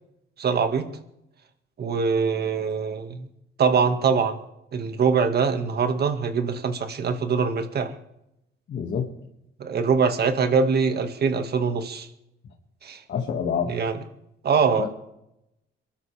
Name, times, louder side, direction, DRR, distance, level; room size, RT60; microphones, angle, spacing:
voice 1, 0.4-0.9 1.8-3.3 3.6-4.4 4.7-7.9 9.6-12.1 12.8-13.0 13.7-13.9 14.4-14.9, right 5 dB, 55° right, 7 dB, 1.9 m, -23 dB
voice 2, 8.7-9.1 13.1-13.7 14.8-14.9, left 7 dB, 65° left, 0 dB, 2.1 m, -27 dB
24.0 x 12.5 x 3.5 m, 0.82 s
cardioid pair, 90°, 20 cm